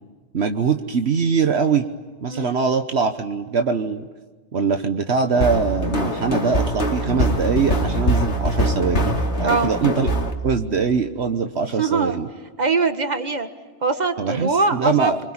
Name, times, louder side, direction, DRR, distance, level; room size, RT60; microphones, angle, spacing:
voice 1, 0.3-1.9 2.2-4.1 4.5-10.1 10.4-12.3 14.2-15.2, right 5 dB, 70° right, 7 dB, 1.4 m, -22 dB
sound 1, 5.4-10.3, equal, 85° left, 2.6 m, -22 dB
voice 2, 9.4-9.7 11.8-12.2 12.6-13.5 13.8-15.2, right 4 dB, 40° right, 8 dB, 1.9 m, -22 dB
25.5 x 25.5 x 8.8 m, 1.3 s
omnidirectional pair, 1.1 m